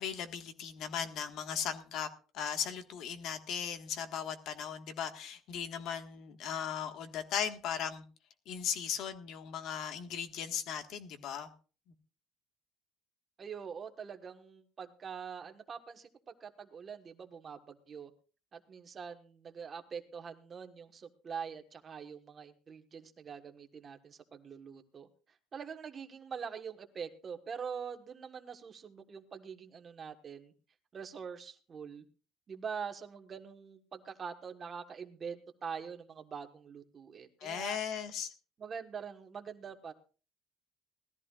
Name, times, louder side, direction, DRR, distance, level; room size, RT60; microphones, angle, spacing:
voice 1, 0.0-2.1 2.3-8.0 8.5-11.5 37.4-38.3, left 8 dB, 60° left, 7 dB, 1.6 m, -37 dB
voice 2, 13.4-16.1 16.4-18.1 18.5-25.1 25.5-30.5 30.9-32.0 32.5-37.8 38.6-39.9, right 6 dB, 30° right, 7 dB, 1.3 m, -44 dB
19.5 x 14.0 x 2.4 m, 0.37 s
cardioid pair, 145°, 0 cm